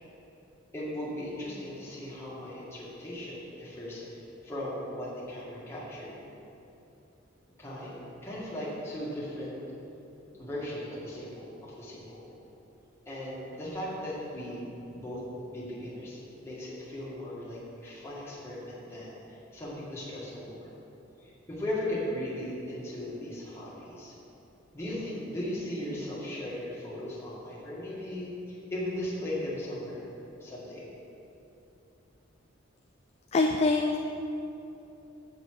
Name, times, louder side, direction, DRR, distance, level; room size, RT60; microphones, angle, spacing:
voice 1, 0.7-6.1 7.6-9.6 10.4-12.3 13.1-20.7 21.2-24.1 24.7-30.1 30.4-30.9, left 1 dB, 15° left, -8 dB, 2.0 m, -37 dB
voice 2, 33.3-34.1, left 3 dB, 30° left, 2 dB, 0.4 m, -25 dB
7.6 x 6.8 x 4.8 m, 2.9 s
head